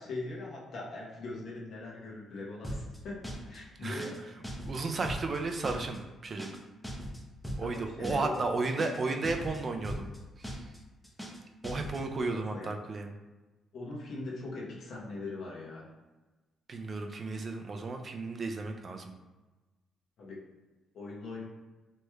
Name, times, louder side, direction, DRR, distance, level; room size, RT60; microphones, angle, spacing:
voice 1, 0.0-4.2 7.6-8.6 12.2-12.8 13.7-15.9 20.2-20.4 20.9-21.4, left 2 dB, 70° left, -4 dB, 0.9 m, -41 dB
sound 1, 2.6-3.0 3.2-3.6 3.8-4.2 4.4-4.8 5.0-5.4 5.6-6.0 6.2-6.6 6.8-7.2 7.4-7.8 8.0-8.4 8.6-9.0 9.2-9.6 9.8-10.2 10.4-10.8 11.0-11.4 11.6-12.0, equal, 5° left, 0.6 m, -39 dB
voice 2, 4.7-6.5 7.6-10.1 11.6-13.1 16.7-19.1, right 3 dB, 40° right, 4 dB, 0.4 m, -33 dB
3.1 x 3.0 x 2.3 m, 1.2 s
cardioid pair, 90°, 0 cm